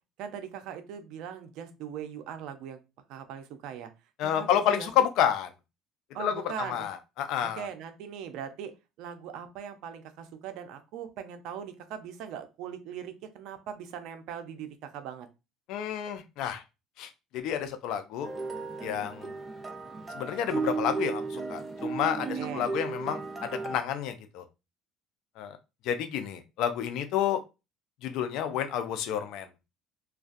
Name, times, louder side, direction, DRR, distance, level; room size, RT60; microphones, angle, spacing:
voice 1, 0.2-2.8 3.1-3.9 4.2-4.9 6.1-6.9 7.4-8.7 9.0-15.3 22.2-22.7, right 8 dB, 70° right, 8 dB, 0.4 m, -40 dB
voice 2, 4.2-5.5 6.2-7.7 15.7-16.6 17.0-18.3 18.8-19.3 20.1-24.4 25.4-25.6 25.8-27.4 28.0-29.5, left 9 dB, 70° left, 9 dB, 0.4 m, -30 dB
sound 1, 18.2-23.8, right 4 dB, 25° right, 0.6 m, -34 dB
2.2 x 2.2 x 2.5 m, 0.27 s
hypercardioid pair, 75°, 0 cm